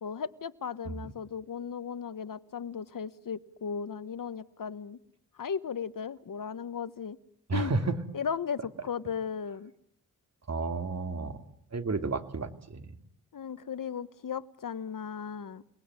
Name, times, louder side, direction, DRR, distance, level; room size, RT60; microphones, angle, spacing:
voice 1, 0.0-5.0 5.3-7.2 7.5-7.7 8.1-9.7 13.3-15.6, left 7 dB, 60° left, 14 dB, 1.3 m, -36 dB
voice 2, 7.5-7.8 10.5-11.4 11.7-12.8, right 4 dB, 45° right, 7 dB, 2.6 m, -32 dB
29.0 x 19.5 x 9.7 m, 0.72 s
cardioid pair, 85°, 36 cm